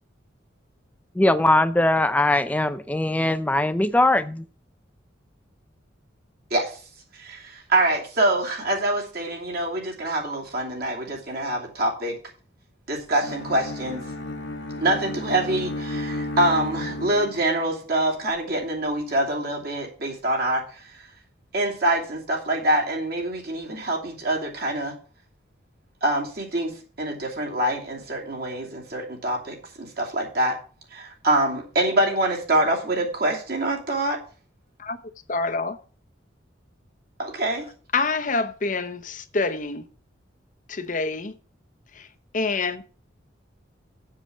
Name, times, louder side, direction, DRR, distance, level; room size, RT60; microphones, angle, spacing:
voice 1, 1.2-4.4, left 1 dB, 10° left, 0.4 m, -21 dB
voice 2, 7.2-12.2 12.9-14.0 14.8-20.8 21.5-24.9 26.0-30.5 30.9-34.2 37.2-37.7, right 1 dB, 55° right, 2.8 m, -25 dB
Bowed string instrument, 13.2-17.6, left 2 dB, 70° left, 1.1 m, -32 dB
voice 3, 35.3-35.8 37.9-39.8 40.7-41.3 42.3-42.8, left 3 dB, 40° left, 0.8 m, -26 dB
7.4 x 6.8 x 7.0 m
head